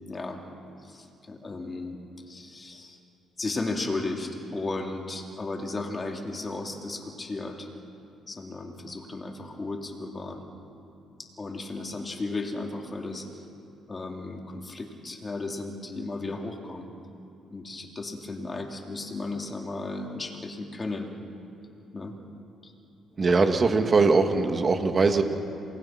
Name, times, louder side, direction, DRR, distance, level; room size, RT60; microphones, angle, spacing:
voice 1, 0.1-0.4 0.8-2.0 2.3-3.0 3.4-7.7 8.3-10.4 11.4-13.3 13.9-16.9 17.5-21.1 21.9-22.2 22.6-22.7, left 2 dB, 30° left, 2 dB, 3.3 m, -35 dB
voice 2, 23.2-25.2, right 4 dB, 40° right, 5 dB, 2.1 m, -21 dB
28.0 x 19.5 x 6.1 m, 2.7 s
cardioid pair, 90°, 0 cm